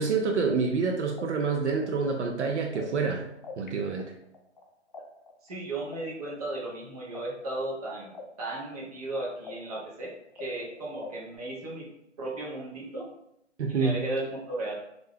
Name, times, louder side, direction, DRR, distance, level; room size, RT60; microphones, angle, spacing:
voice 1, 0.0-3.2 3.6-4.1 13.6-14.0, right 4 dB, 70° right, 2 dB, 0.5 m, -27 dB
sound 1, 0.8-0.9 1.2-3.7 4.0-7.2 7.5-11.4, left 4 dB, 40° left, 0.4 m, -45 dB
voice 2, 5.4-8.1 8.4-11.9 12.2-13.1 13.7-14.7, right 2 dB, 30° right, -3 dB, 0.7 m, -35 dB
2.4 x 2.1 x 3.4 m, 0.78 s
hypercardioid pair, 160°, 36 cm